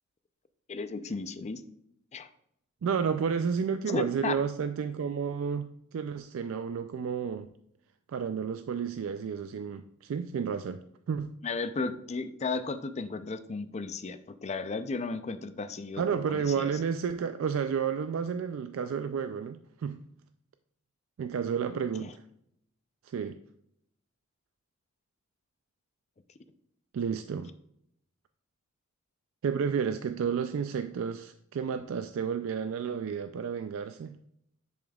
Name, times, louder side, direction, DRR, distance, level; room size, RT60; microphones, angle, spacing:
voice 1, 0.7-1.6 2.1-2.3 3.9-4.4 11.4-16.0 16.3-16.7 21.7-22.1, left 4 dB, 35° left, 11 dB, 0.5 m, -34 dB
voice 2, 2.8-7.5 8.1-10.8 11.1-11.3 16.0-20.0 21.2-22.2 23.0-23.4 26.9-27.5 29.4-34.2, right 6 dB, 80° right, 10 dB, 0.3 m, -31 dB
10.5 x 5.0 x 2.3 m, 0.75 s
head